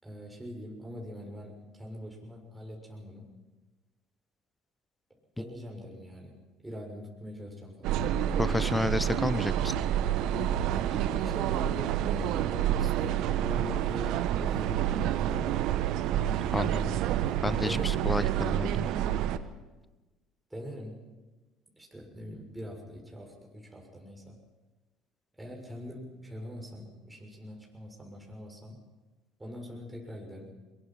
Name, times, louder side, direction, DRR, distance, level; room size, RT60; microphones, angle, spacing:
voice 1, 0.0-3.3 5.4-6.3 6.6-8.0 10.7-15.6 17.3-18.1 20.5-21.0 21.8-24.4 25.4-28.8 29.4-30.5, equal, 10° right, 0 dB, 6.8 m, -43 dB
sound 1, 7.8-19.4, right 11 dB, 65° right, 1.1 m, -28 dB
voice 2, 8.4-9.7 16.1-16.9 17.4-18.9, left 2 dB, 10° left, 17 dB, 0.9 m, -31 dB
23.0 x 22.5 x 5.8 m, 1.2 s
hypercardioid pair, 65°, 0 cm